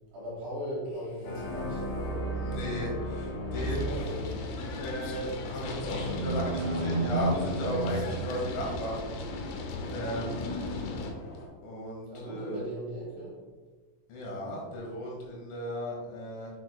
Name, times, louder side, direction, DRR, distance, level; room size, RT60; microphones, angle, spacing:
voice 1, 0.1-2.4 3.5-4.5 12.1-13.4, equal, 55° right, -7 dB, 3.0 m, -38 dB
sound 1, 1.2-11.5, equal, 60° left, 3.6 m, -38 dB
voice 2, 2.4-4.0 4.8-9.0 9.9-10.5 11.6-12.6 14.1-16.5, equal, 75° left, -3 dB, 4.1 m, -35 dB
sound 2, 3.5-11.1, left 3 dB, 90° left, 2.2 m, -37 dB
sound 3, 6.0-9.0, right 2 dB, 80° right, 2.6 m, -32 dB
8.7 x 6.5 x 2.2 m, 1.4 s
omnidirectional pair, 5.8 m